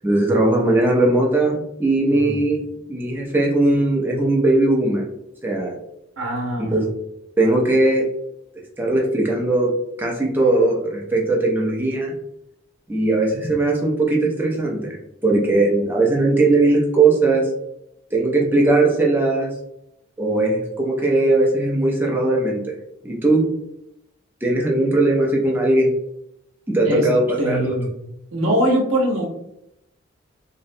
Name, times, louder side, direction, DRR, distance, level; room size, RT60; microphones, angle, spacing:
voice 1, 0.0-2.6 2.9-5.0 5.4-5.8 6.6-6.9 7.4-8.1 8.8-12.1 12.9-15.0 15.2-17.5 18.1-19.5 20.2-22.8 23.0-23.5 24.4-25.9 26.7-27.8, right 2 dB, 10° right, -2 dB, 0.3 m, -19 dB
voice 2, 6.2-6.8 26.8-27.1 27.4-27.9 28.3-29.3, equal, 85° right, 0 dB, 0.6 m, -22 dB
2.6 x 2.0 x 2.5 m, 0.81 s
head